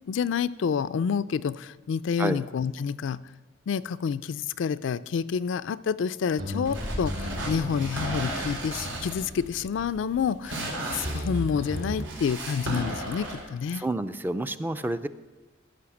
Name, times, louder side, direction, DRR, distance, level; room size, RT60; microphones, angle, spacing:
voice 1, 0.1-3.2 3.7-10.7 10.9-13.8, left 6 dB, 65° left, 16 dB, 0.3 m, -28 dB
sound 1, 6.4-12.1, left 1 dB, 45° right, 2.5 m, -36 dB
sound 2, 6.6-13.4, right 1 dB, 85° right, 4.5 m, -35 dB
voice 2, 13.7-15.1, right 1 dB, 10° right, 11 dB, 0.4 m, -29 dB
14.5 x 5.9 x 7.0 m, 1.2 s
head